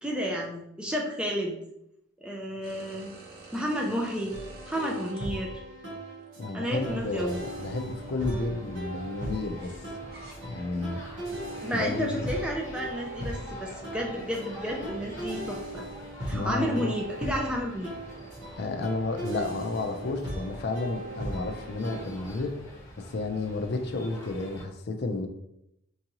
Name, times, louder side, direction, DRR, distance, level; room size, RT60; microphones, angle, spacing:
voice 1, 0.0-1.6 2.2-3.1 3.5-4.3 4.7-5.6 6.5-7.3 11.6-15.8 16.2-17.9, equal, 5° right, -1 dB, 0.4 m, -31 dB
sound 1, 2.6-5.2 6.2-6.3 9.6-10.3, right 3 dB, 45° right, 0.7 m, -48 dB
sound 2, 4.3-22.0, right 1 dB, 65° right, 1.3 m, -38 dB
voice 2, 6.4-9.7 10.4-11.0 11.7-12.2 16.3-16.8 18.6-22.5 23.0-25.3, left 3 dB, 50° left, 5 dB, 0.5 m, -31 dB
sound 3, 6.8-24.6, equal, 15° left, 1.2 m, -45 dB
4.6 x 2.6 x 2.9 m, 0.81 s
head